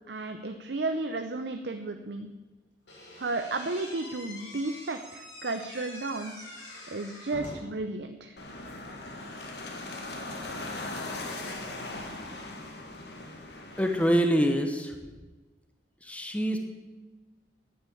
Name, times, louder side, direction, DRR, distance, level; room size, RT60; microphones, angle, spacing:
voice 1, 0.1-2.3 3.2-6.5 6.9-8.3, right 2 dB, 65° right, 7 dB, 0.7 m, -33 dB
Slam / Squeak, 2.9-7.8, left 1 dB, 85° left, 5.1 m, -45 dB
sound 1, 8.4-14.1, left 2 dB, 65° left, 1.9 m, -39 dB
voice 2, 13.8-14.9 16.1-16.6, equal, 10° left, 4 dB, 1.0 m, -25 dB
10.0 x 9.0 x 8.6 m, 1.2 s
head